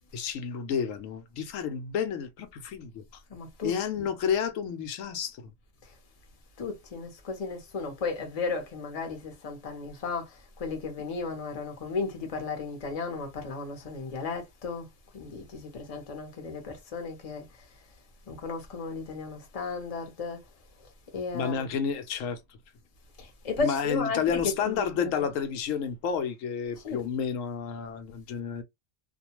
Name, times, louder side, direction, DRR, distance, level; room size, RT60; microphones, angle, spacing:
voice 1, 0.1-3.0 3.6-5.4 21.3-22.4 23.6-28.6, left 7 dB, 85° left, 0.9 m, -30 dB
voice 2, 3.3-4.1 5.8-5.9 6.6-14.9 15.1-17.5 18.3-20.4 21.1-21.8 23.2-25.3 26.8-27.0, left 4 dB, 35° left, 0.7 m, -35 dB
2.4 x 2.2 x 2.8 m
omnidirectional pair, 1.3 m